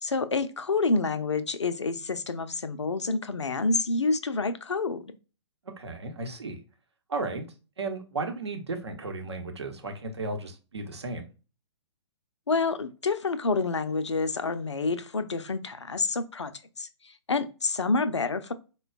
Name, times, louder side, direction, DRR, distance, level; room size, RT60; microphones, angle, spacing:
voice 1, 0.0-5.1 12.5-16.5 16.8-18.5, left 3 dB, 75° left, 0.4 m, -28 dB
voice 2, 5.6-6.6 7.1-7.5 7.8-11.3, right 3 dB, 65° right, 0.8 m, -34 dB
4.3 x 2.2 x 2.3 m
figure-of-eight pair, 120°, 15 cm